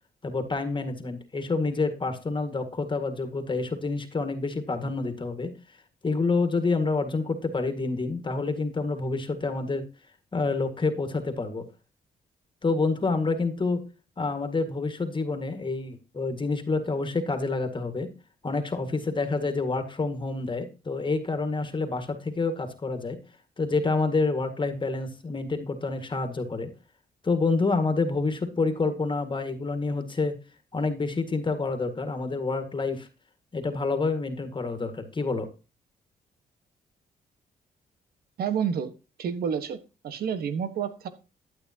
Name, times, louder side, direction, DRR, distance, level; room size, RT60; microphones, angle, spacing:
voice 1, 0.2-5.5 6.0-9.9 10.3-11.7 12.6-13.8 14.2-18.1 18.4-23.2 23.6-26.7 27.2-30.3 30.7-33.1 33.5-35.5, left 3 dB, 30° left, 7 dB, 1.8 m, -28 dB
voice 2, 38.4-38.9 39.2-39.8 40.0-41.1, right 7 dB, 75° right, 11 dB, 1.4 m, -29 dB
12.0 x 8.7 x 2.9 m, 0.31 s
cardioid pair, 80°, 16 cm